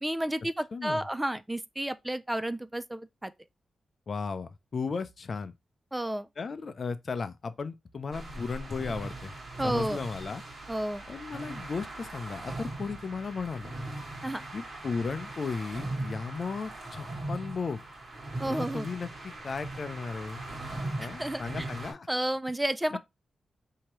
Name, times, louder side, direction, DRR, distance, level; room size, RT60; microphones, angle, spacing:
voice 1, 0.0-3.3 5.9-6.3 9.6-10.0 10.7-11.0 14.2-14.4 18.4-18.9 21.2-21.7 22.1-23.0, right 1 dB, 15° right, 0.3 m, -31 dB
voice 2, 0.7-1.0 4.1-5.5 6.4-9.3 9.6-10.4 11.1-13.7 14.5-17.8 18.5-20.4 21.0-22.1, left 4 dB, 55° left, 0.5 m, -35 dB
sound 1, 8.1-21.9, right 2 dB, 55° right, 1.6 m, -39 dB
3.0 x 2.8 x 4.5 m
cardioid pair, 65°, 0 cm